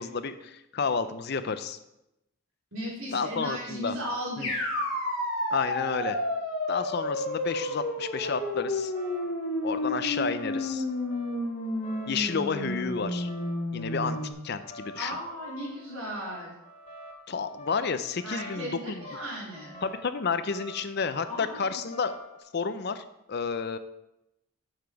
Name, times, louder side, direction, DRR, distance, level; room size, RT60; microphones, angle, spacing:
voice 1, 0.0-1.8 3.1-4.0 4.4-4.5 5.5-6.2 6.7-8.9 9.6-10.8 12.1-13.3 13.7-14.2 14.4-15.2 17.3-19.0 19.8-22.1 22.5-23.8, left 5 dB, 50° left, 11 dB, 0.5 m, -31 dB
voice 2, 2.7-4.5 14.9-16.5 18.2-19.8 21.2-21.8, equal, 75° right, -5 dB, 4.1 m, -36 dB
sound 1, 4.4-14.3, left 1 dB, 80° left, 2.7 m, -31 dB
sound 2, 7.1-22.4, equal, 30° left, 1.3 m, -48 dB
8.9 x 6.9 x 4.7 m, 0.88 s
head